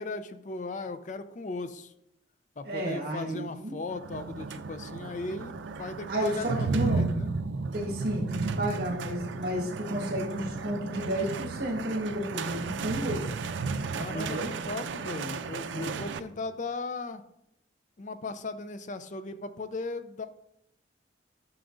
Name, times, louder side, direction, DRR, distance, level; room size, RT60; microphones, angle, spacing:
voice 1, 0.0-1.9 2.6-6.5 6.7-7.3 13.9-17.2 18.0-20.3, left 3 dB, 40° left, 11 dB, 0.4 m, -37 dB
voice 2, 2.6-3.8 6.1-7.0 7.7-13.2 14.1-14.5 15.7-16.0, right 1 dB, 60° right, -1 dB, 1.6 m, -32 dB
sound 1, 3.9-16.2, right 4 dB, 85° right, 0.4 m, -34 dB
11.5 x 5.9 x 2.6 m, 0.79 s
head